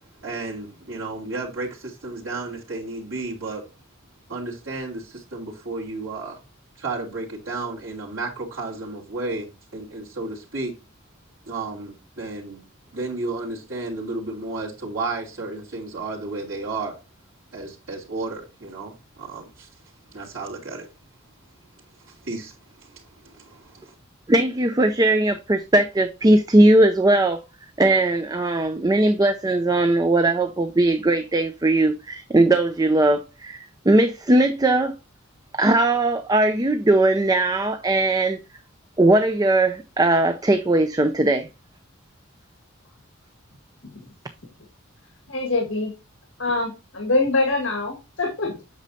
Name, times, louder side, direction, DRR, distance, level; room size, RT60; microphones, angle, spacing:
voice 1, 0.2-3.6 4.3-6.4 6.8-10.7 11.5-12.6 12.9-16.9 17.5-19.7 20.1-20.9 22.1-22.5 22.8-23.9, right 3 dB, 85° right, 2.8 m, -32 dB
voice 2, 24.3-27.4 27.8-34.9 35.5-38.4 39.0-41.5, right 2 dB, 20° right, 0.5 m, -19 dB
voice 3, 45.3-45.9 46.4-48.6, left 2 dB, 70° left, 1.8 m, -24 dB
8.2 x 6.6 x 2.7 m
head